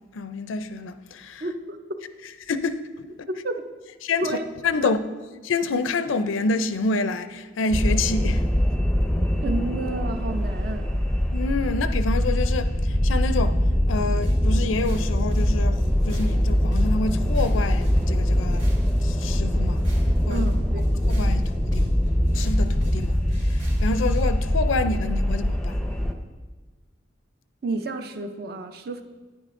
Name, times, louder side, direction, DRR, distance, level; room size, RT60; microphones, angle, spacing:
voice 1, 0.1-1.4 2.4-3.0 4.0-4.3 4.6-5.0 5.4-8.4 11.3-13.6 13.9-18.7 19.0-19.9 20.2-20.5 21.1-21.9 22.3-25.8, left 3 dB, 85° left, 0.5 m, -28 dB
voice 2, 1.4-1.8 3.3-3.6 4.2-4.4 4.8-4.9 9.4-10.9 20.3-20.8 27.6-29.0, right 2 dB, 50° right, 0.5 m, -30 dB
sound 1, 7.7-26.1, equal, 5° left, 0.5 m, -23 dB
sound 2, 14.2-24.3, equal, 85° right, 2.2 m, -44 dB
10.0 x 9.8 x 2.5 m
head